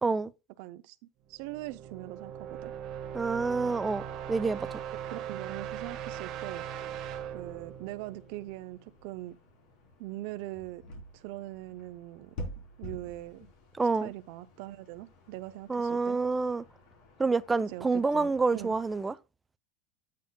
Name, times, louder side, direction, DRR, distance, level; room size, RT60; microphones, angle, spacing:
voice 1, 0.6-1.0 1.3-2.7 5.0-6.7 7.3-9.4 10.0-10.8 11.1-12.3 12.8-13.5 14.0-16.2 17.7-18.8, right 16 dB, 65° right, 0.5 m, -41 dB
sound 1, 1.3-9.1, right 9 dB, 45° right, 1.0 m, -40 dB
voice 2, 3.1-4.8 13.8-14.1 15.7-16.6 17.2-19.1, right 4 dB, 15° right, 0.4 m, -28 dB
sound 2, 6.8-19.1, left 1 dB, 65° left, 3.5 m, -49 dB
8.5 x 7.4 x 2.2 m
supercardioid pair, 130°, 0 cm